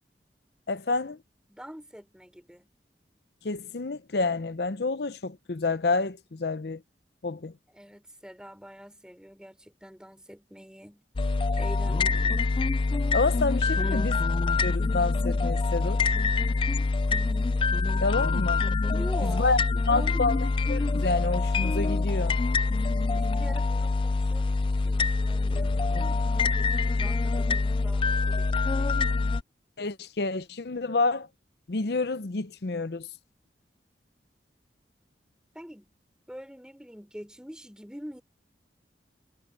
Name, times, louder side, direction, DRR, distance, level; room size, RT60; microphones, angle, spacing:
voice 1, 0.7-1.2 3.4-6.8 7.2-7.5 13.1-14.2 14.6-16.1 18.0-18.6 19.2-19.6 19.9-22.4 29.8-31.3 31.7-33.1, left 3 dB, 65° left, 0.7 m, -28 dB
voice 2, 1.5-2.7 7.7-11.0 11.6-12.5 13.7-14.2 18.9-20.4 23.1-28.9 35.5-35.9 36.3-38.2, equal, 5° right, 4.4 m, -45 dB
sound 1, 11.2-29.4, left 3 dB, 30° left, 0.3 m, -25 dB
head